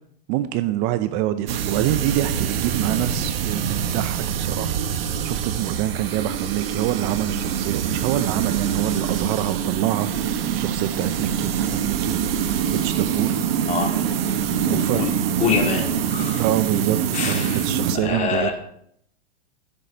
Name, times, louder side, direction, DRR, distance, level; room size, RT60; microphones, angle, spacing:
voice 1, 0.3-4.8 5.2-13.4 14.7-15.0 16.4-18.5, right 13 dB, 35° right, 12 dB, 0.6 m, -26 dB
sound 1, 1.5-18.0, right 8 dB, 85° right, 1.3 m, -25 dB
voice 2, 14.7-15.1 15.4-16.4 17.1-17.7 18.0-18.5, left 6 dB, 25° left, 1 dB, 2.7 m, -25 dB
15.0 x 6.8 x 4.5 m, 0.68 s
supercardioid pair, 140°, 29 cm